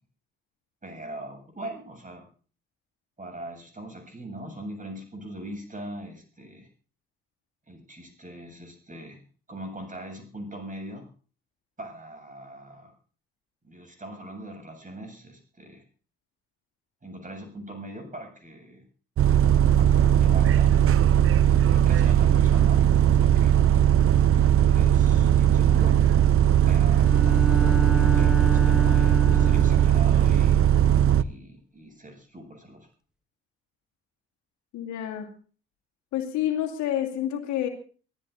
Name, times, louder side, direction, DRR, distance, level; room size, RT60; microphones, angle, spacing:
voice 1, 0.8-2.2 3.2-6.7 7.7-9.2 9.5-11.1 11.8-12.9 13.6-15.8 17.0-18.9 19.6-20.7 21.4-22.8 23.2-23.6 24.5-26.1 26.6-30.6 31.2-32.9, right 1 dB, 25° right, 5 dB, 7.9 m, -41 dB
Bus, 19.2-31.2, right 10 dB, 45° right, 0.7 m, -19 dB
Bowed string instrument, 27.0-30.1, left 1 dB, ahead, 1.8 m, -31 dB
voice 2, 34.7-35.3 36.1-37.7, left 11 dB, 70° left, 1 dB, 2.6 m, -28 dB
24.5 x 16.0 x 2.7 m, 0.40 s
hypercardioid pair, 45°, 30 cm